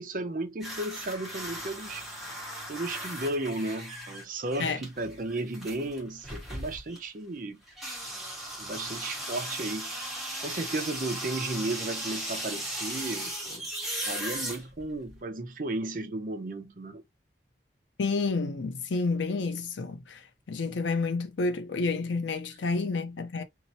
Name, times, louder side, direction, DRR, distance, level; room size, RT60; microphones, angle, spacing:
voice 1, 0.0-2.1 2.7-7.6 8.6-9.9 10.4-13.7 14.0-17.0, right 2 dB, 45° right, 0.5 m, -34 dB
sound 1, 0.6-7.1 7.7-15.2, right 1 dB, ahead, 1.0 m, -37 dB
voice 2, 18.0-20.2 20.5-23.4, left 3 dB, 90° left, 0.6 m, -29 dB
2.8 x 2.0 x 2.6 m
head